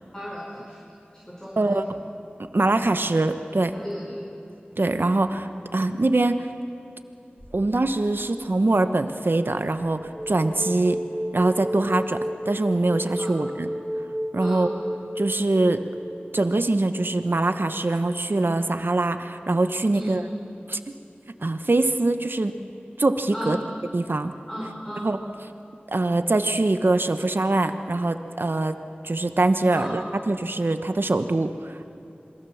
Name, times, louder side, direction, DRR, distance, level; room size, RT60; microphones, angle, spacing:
voice 1, 0.1-0.8 1.1-1.8 3.7-4.2 13.2-13.4 14.4-14.7 19.9-20.3 23.3-23.6 24.5-25.1 29.7-30.0, equal, 15° left, -4 dB, 4.4 m, -35 dB
voice 2, 1.6-2.1 2.5-3.7 4.8-6.5 7.5-11.0 11.3-12.2 12.5-13.7 14.3-14.7 15.2-15.8 16.3-20.2 20.7-21.0 21.4-22.5 23.0-23.6 23.9-24.3 25.0-25.2 25.9-28.7 29.0-31.8, right 2 dB, 70° right, 8 dB, 1.1 m, -23 dB
sound 1, 7.4-8.2 9.8-17.5, equal, ahead, 4.4 m, -33 dB
27.0 x 21.5 x 7.2 m, 2.7 s
wide cardioid pair, 40°, 4 cm